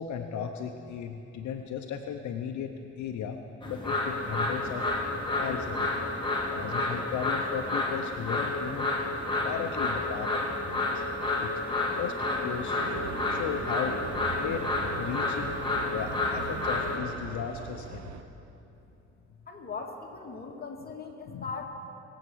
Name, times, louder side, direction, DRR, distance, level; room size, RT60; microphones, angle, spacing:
voice 1, 0.0-3.4 3.7-4.9 5.4-5.9 6.5-8.9 9.4-11.0 11.4-11.5 11.9-12.8 13.3-14.0 14.4-15.6 15.9-18.2 21.3-21.5, left 8 dB, 70° left, 5 dB, 0.8 m, -36 dB
sound 1, 3.6-17.0, left 2 dB, 15° left, 2.4 m, -30 dB
sound 2, 12.8-18.2, right 7 dB, 60° right, 1.0 m, -41 dB
voice 2, 19.5-21.7, left 4 dB, 30° left, 0 dB, 2.1 m, -39 dB
21.5 x 8.1 x 6.3 m, 2.8 s
cardioid pair, 90°, 30 cm